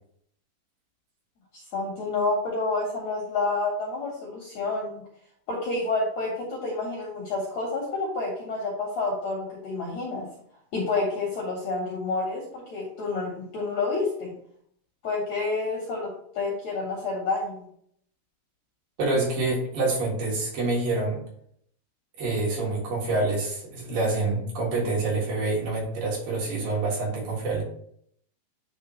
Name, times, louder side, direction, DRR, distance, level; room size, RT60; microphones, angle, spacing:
voice 1, 1.5-5.0 5.5-10.3 10.7-14.4 15.0-16.1 16.4-17.6, left 3 dB, 65° left, -2 dB, 1.8 m, -29 dB
voice 2, 19.0-21.2 22.2-27.6, right 2 dB, 60° right, -3 dB, 3.2 m, -27 dB
9.5 x 3.3 x 3.0 m, 0.66 s
omnidirectional pair, 4.6 m